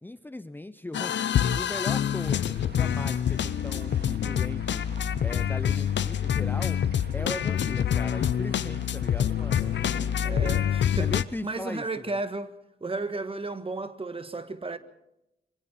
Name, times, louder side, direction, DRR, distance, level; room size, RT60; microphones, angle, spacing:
voice 1, 0.0-4.8 5.2-6.8 7.1-10.6 11.0-12.2, left 1 dB, 10° left, 0.7 m, -39 dB
sound 1, 0.9-11.2, left 9 dB, 85° left, 0.7 m, -26 dB
sound 2, 2.2-11.2, right 5 dB, 65° right, 2.3 m, -50 dB
voice 2, 10.2-11.1 11.4-12.5 12.8-14.8, right 3 dB, 30° right, 1.5 m, -33 dB
26.0 x 23.0 x 4.3 m
wide cardioid pair, 105°, 18 cm